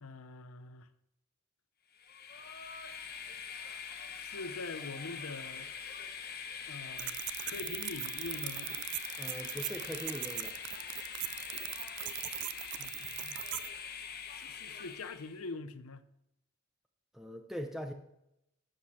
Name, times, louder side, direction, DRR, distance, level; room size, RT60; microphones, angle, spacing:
voice 1, 0.0-0.9 4.1-5.7 6.7-8.7 12.8-13.6 14.3-16.1, left 3 dB, 75° left, 0.8 m, -44 dB
Train, 1.9-15.4, left 6 dB, 45° left, 1.0 m, -44 dB
sound 1, 7.0-13.7, right 15 dB, 55° right, 0.5 m, -40 dB
voice 2, 9.2-10.6 17.1-17.9, equal, ahead, 0.6 m, -41 dB
12.0 x 8.1 x 4.4 m
head